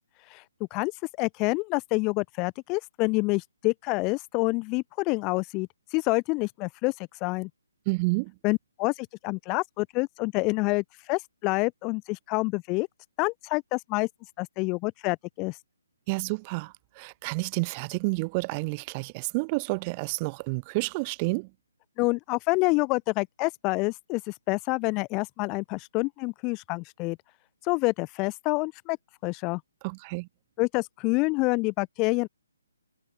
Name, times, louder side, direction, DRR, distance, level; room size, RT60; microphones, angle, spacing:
voice 1, 1.2-7.5 8.4-12.9 13.2-14.1 14.4-15.6 22.0-27.2 27.6-29.0 29.2-29.6 30.6-32.3, left 27 dB, 25° left, 0.3 m, -27 dB
voice 2, 7.9-8.3 16.1-21.5 29.8-30.3, right 29 dB, 25° right, 2.7 m, -30 dB
figure-of-eight pair, 145°, 0 cm